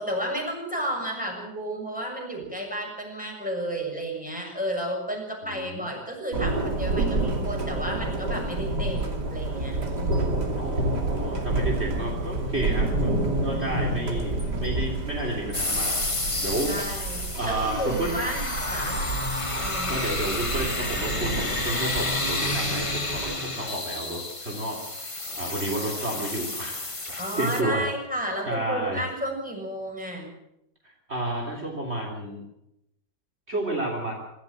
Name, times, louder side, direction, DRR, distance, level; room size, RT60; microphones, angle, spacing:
voice 1, 0.0-10.5 16.7-19.0 19.6-20.0 27.2-30.3, right 1 dB, 5° right, 0 dB, 6.9 m, -32 dB
voice 2, 5.4-5.9 10.6-13.1 13.4-16.0 16.4-18.2 19.9-25.1 25.4-27.9 28.5-29.0 30.8-32.4 33.5-34.1, right 1 dB, 40° right, 0 dB, 3.7 m, -31 dB
Thunder, 6.3-23.4, right 2 dB, 85° right, 3.4 m, -29 dB
sound 1, 15.5-27.6, left 2 dB, 20° left, 1.7 m, -30 dB
25.5 x 13.5 x 7.5 m, 0.81 s
omnidirectional pair, 1.8 m